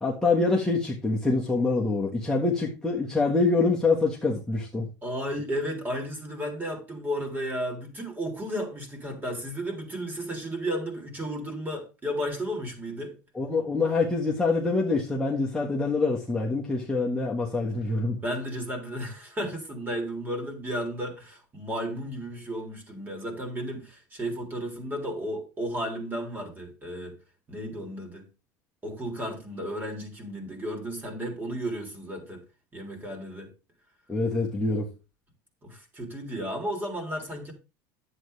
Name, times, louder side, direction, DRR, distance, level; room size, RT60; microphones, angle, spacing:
voice 1, 0.0-4.9 13.3-18.2 34.1-34.9, left 3 dB, 5° left, 1.4 m, -25 dB
voice 2, 5.0-13.2 18.2-27.2 27.5-28.3 28.8-32.4 32.7-33.5 35.6-37.5, equal, 20° right, 3.4 m, -33 dB
10.5 x 8.1 x 3.3 m
supercardioid pair, 115°, 9 cm